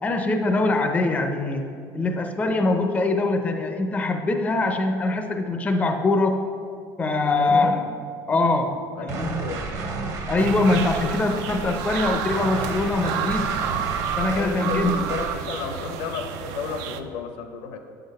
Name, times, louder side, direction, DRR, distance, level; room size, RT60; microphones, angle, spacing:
voice 1, 0.0-6.5 7.0-7.8 8.3-9.4 10.3-13.5 14.2-15.0, left 2 dB, 15° left, 5 dB, 0.4 m, -23 dB
voice 2, 7.3-7.9 8.9-9.6 14.3-17.8, left 5 dB, 80° left, 6 dB, 0.7 m, -33 dB
sound 1, 9.1-15.4, right 4 dB, 40° right, 0.8 m, -32 dB
sound 2, 10.4-17.0, right 8 dB, 85° right, 0.4 m, -30 dB
6.8 x 3.9 x 5.3 m, 2.3 s
cardioid pair, 135°, 9 cm